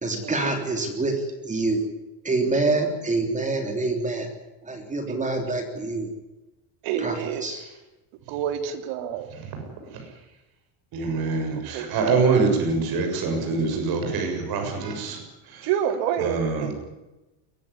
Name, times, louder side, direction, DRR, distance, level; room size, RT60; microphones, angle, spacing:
voice 1, 0.0-1.8 2.2-4.3 4.7-6.1 7.0-7.6, right 2 dB, 15° right, 4 dB, 3.4 m, -26 dB
voice 2, 6.8-7.5 8.3-9.3 11.7-11.9 15.6-16.7, right 9 dB, 70° right, 7 dB, 3.4 m, -28 dB
voice 3, 10.9-15.2 15.5-15.7 16.2-16.7, right 4 dB, 50° right, 4 dB, 7.0 m, -24 dB
22.5 x 15.0 x 9.9 m, 1.0 s
cardioid pair, 150°, 47 cm